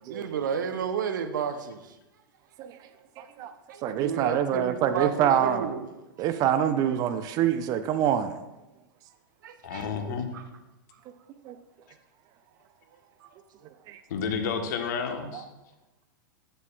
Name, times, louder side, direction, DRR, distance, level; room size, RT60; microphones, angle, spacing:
voice 1, 0.0-2.0 3.4-5.9 9.4-9.9 10.3-10.4 13.2-13.3, right 7 dB, 60° right, 8 dB, 0.8 m, -32 dB
voice 2, 3.2-3.5 3.8-5.7 6.2-8.4 10.1-10.2 11.4-11.6 13.9-14.0 15.3-15.4, right 9 dB, 35° right, 10 dB, 0.5 m, -26 dB
voice 3, 9.6-10.3 14.1-15.4, left 6 dB, 55° left, 5 dB, 1.2 m, -30 dB
11.0 x 8.2 x 2.4 m, 0.99 s
figure-of-eight pair, 100°, 11 cm